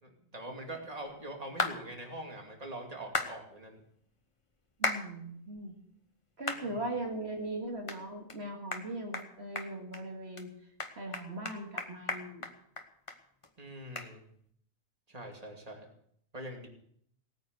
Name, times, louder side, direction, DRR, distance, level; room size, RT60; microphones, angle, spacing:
voice 1, 0.0-3.8 6.5-6.8 13.6-14.2 15.1-15.9 16.3-16.7, right 1 dB, 35° right, 1 dB, 2.7 m, -43 dB
sound 1, 1.6-1.8 3.1-3.3 4.8-5.0 5.6-5.7 6.5-6.6 7.1-7.2 7.9-8.0 8.3-8.4 8.7-8.9 9.1-9.3 9.6-10.0 10.4-10.5 10.8-13.2 13.4-13.5 14.0-14.1, left 3 dB, 30° left, 1.2 m, -34 dB
voice 2, 4.8-5.7 6.4-10.5 11.0-12.5, right 2 dB, 70° right, 1 dB, 2.3 m, -39 dB
18.0 x 9.3 x 6.7 m, 0.68 s
omnidirectional pair, 1.1 m